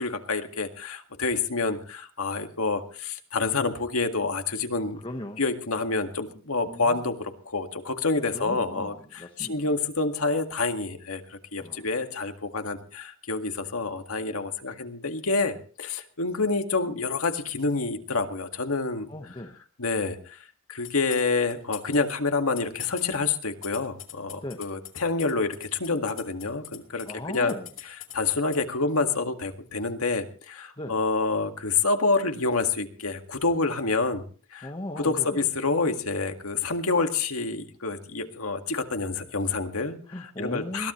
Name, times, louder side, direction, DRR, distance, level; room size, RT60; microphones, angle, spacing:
voice 1, 0.0-5.0 5.4-19.1 19.8-20.4 20.7-27.5 28.1-34.2 34.5-40.0 40.4-40.9, left 3 dB, 85° left, 5 dB, 1.9 m, -28 dB
voice 2, 5.0-5.4 6.6-7.1 8.3-9.7 11.6-11.9 19.1-19.6 24.4-24.6 27.0-27.7 30.8-31.0 34.6-35.5 40.1-40.9, left 1 dB, 25° left, 5 dB, 1.3 m, -38 dB
sound 1, 20.8-22.0 22.3-28.6, left 13 dB, 65° left, 2.4 m, -41 dB
21.5 x 15.0 x 3.1 m, 0.40 s
head